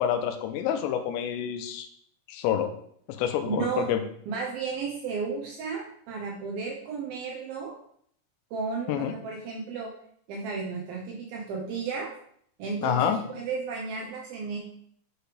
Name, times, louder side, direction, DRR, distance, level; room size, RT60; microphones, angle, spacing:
voice 1, 0.0-1.9 2.3-2.7 3.1-4.0 8.9-9.1 12.8-13.2, left 9 dB, 80° left, 6 dB, 2.8 m, -27 dB
voice 2, 3.5-3.9 4.3-7.7 8.5-9.9 10.3-12.1 12.6-14.6, right 5 dB, 80° right, -1 dB, 2.1 m, -33 dB
9.0 x 5.0 x 3.3 m, 0.65 s
omnidirectional pair, 5.4 m